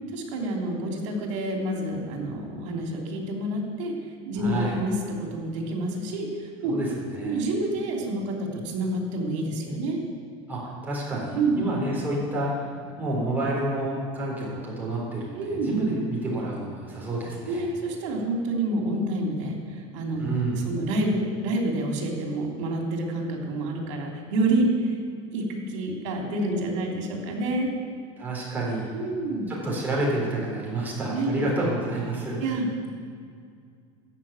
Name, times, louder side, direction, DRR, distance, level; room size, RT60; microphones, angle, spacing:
voice 1, 0.1-6.7 7.2-10.0 11.3-11.6 15.3-15.7 17.5-20.3 20.6-25.0 25.3-27.7 28.9-29.5 31.1-31.3 32.4-32.9, right 2 dB, 75° right, 0 dB, 3.2 m, -28 dB
voice 2, 4.4-4.7 6.7-7.4 10.5-17.7 20.2-20.6 28.2-28.9 29.5-32.4, right 2 dB, 10° right, -5 dB, 3.9 m, -29 dB
14.0 x 5.9 x 8.9 m, 2.2 s
supercardioid pair, 160°, 16 cm